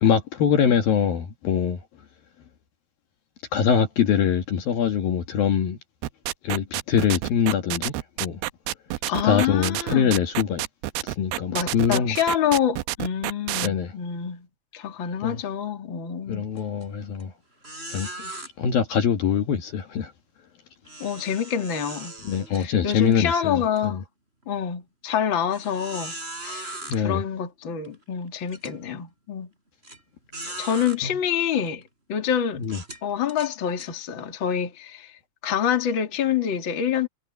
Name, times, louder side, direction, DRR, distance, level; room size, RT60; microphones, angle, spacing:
voice 1, 0.0-1.8 3.5-5.8 6.4-8.4 9.2-10.6 11.0-12.2 13.6-13.9 15.2-15.4 16.3-17.3 17.9-18.1 18.6-20.1 22.2-24.0 26.9-27.2 30.5-30.6 32.6-32.8, left 7 dB, 60° left, 3.2 m, -23 dB
sound 1, 6.0-13.7, right 16 dB, 80° right, 2.5 m, -28 dB
voice 2, 9.1-10.2 11.5-14.5 14.7-16.5 21.0-22.1 22.5-24.0 24.5-26.1 26.4-29.5 30.6-31.8 32.1-32.6 33.0-35.1 35.4-37.1, left 8 dB, 35° left, 2.6 m, -26 dB
sound 2, 16.6-16.8 17.2-17.3 17.6-18.5 20.9-23.2 23.6-23.8 24.4-24.5 25.5-27.0 27.8-27.9 28.5-28.8 29.8-30.0 30.3-31.0 31.7-31.8 32.6-33.9, right 2 dB, 15° right, 6.2 m, -38 dB
omnidirectional pair, 4.9 m